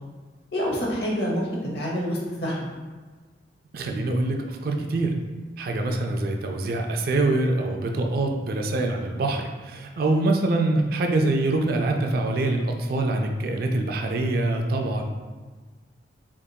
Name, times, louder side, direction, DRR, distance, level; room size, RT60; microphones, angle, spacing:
voice 1, 0.5-1.5 1.7-2.7 10.1-10.5, equal, 55° left, -4 dB, 0.9 m, -27 dB
voice 2, 3.7-5.2 5.6-15.0, right 2 dB, 50° right, 3 dB, 0.3 m, -25 dB
3.8 x 3.5 x 2.2 m, 1.4 s
head